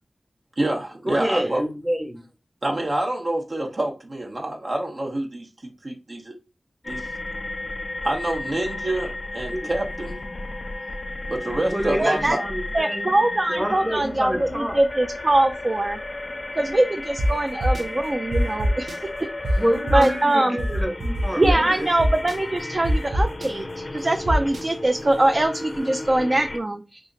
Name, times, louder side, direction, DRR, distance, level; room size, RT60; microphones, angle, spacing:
voice 1, 0.6-1.6 2.6-6.3 6.8-7.1 8.0-10.2 11.3-12.4, right 1 dB, 60° right, 0.8 m, -27 dB
voice 2, 1.1-2.2 9.5-9.6 11.7-13.2 13.5-14.8 19.6-21.9, equal, 15° right, 1.0 m, -27 dB
sound 1, 6.8-26.6, left 2 dB, 50° left, 0.4 m, -34 dB
voice 3, 12.0-12.4 12.7-16.0 16.6-19.0 19.9-20.6 21.4-27.0, right 1 dB, 45° right, 0.4 m, -22 dB
sound 2, 17.2-17.3 17.6-17.8 18.3-18.9 19.4-19.5 19.9-20.1 20.6-21.5 22.0-22.3 22.8-23.5 24.3-24.6, right 1 dB, 90° right, 0.6 m, -23 dB
2.8 x 2.4 x 3.7 m
wide cardioid pair, 55°, 0 cm